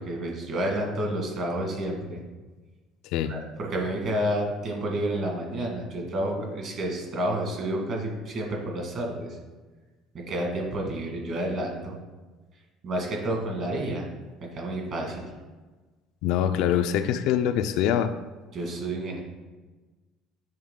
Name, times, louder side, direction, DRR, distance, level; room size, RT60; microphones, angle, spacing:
voice 1, 0.0-2.2 3.3-9.4 10.1-11.9 12.8-14.1 14.5-15.2 18.5-19.2, right 1 dB, 45° right, 0 dB, 1.6 m, -30 dB
voice 2, 16.2-18.1, left 9 dB, 70° left, 9 dB, 0.3 m, -24 dB
7.9 x 3.6 x 3.7 m, 1.2 s
cardioid pair, 145°, 0 cm